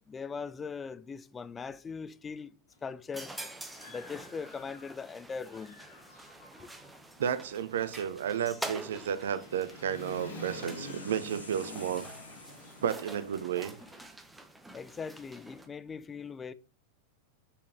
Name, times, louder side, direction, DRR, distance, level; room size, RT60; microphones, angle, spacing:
voice 1, 0.1-3.3 3.9-5.8 6.6-6.7 14.7-16.5, left 5 dB, 15° left, 0.6 m, -40 dB
Human voice / Motorcycle, 2.7-2.8 3.3-5.1 5.4-14.0, left 2 dB, 60° left, 2.6 m, -48 dB
sound 1, 3.1-15.7, right 2 dB, 5° right, 1.1 m, -47 dB
sound 2, 6.8-6.9 7.3-7.4 8.8-13.5, left 2 dB, 85° left, 1.2 m, -53 dB
voice 2, 7.2-12.1 12.8-13.8, right 9 dB, 60° right, 0.8 m, -32 dB
6.6 x 5.4 x 6.5 m
figure-of-eight pair, 90°, 0 cm